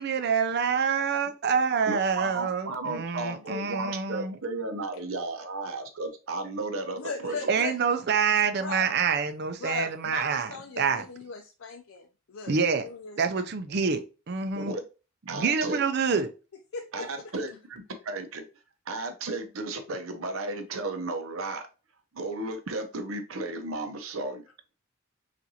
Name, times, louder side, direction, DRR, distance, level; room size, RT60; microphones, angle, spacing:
voice 1, 0.0-4.4 7.5-11.0 12.5-12.8 13.2-14.7 15.3-16.3, right 6 dB, 55° right, 0.5 m, -27 dB
voice 2, 1.9-7.4 14.5-14.8 15.3-15.8 16.9-18.5 18.9-21.6 22.1-24.5, right 2 dB, 85° right, 0.8 m, -34 dB
voice 3, 7.0-7.7 8.6-8.9 9.6-12.5 12.8-13.2 16.7-17.1, left 5 dB, 90° left, 0.5 m, -38 dB
5.7 x 2.6 x 2.7 m
head